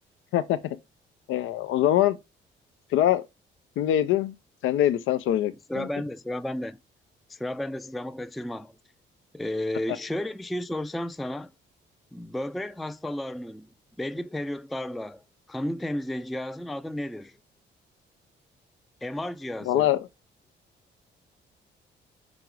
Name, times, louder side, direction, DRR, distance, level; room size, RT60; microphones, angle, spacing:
voice 1, 0.3-0.8 1.3-2.2 2.9-3.2 3.8-4.3 4.6-5.9 19.6-20.0, left 12 dB, 85° left, 0.5 m, -23 dB
voice 2, 5.7-6.8 7.3-8.7 9.3-11.5 12.1-13.7 14.0-15.2 15.5-17.4 19.0-19.9, left 1 dB, ahead, 0.3 m, -33 dB
5.1 x 4.8 x 4.6 m
cardioid pair, 90°, 20 cm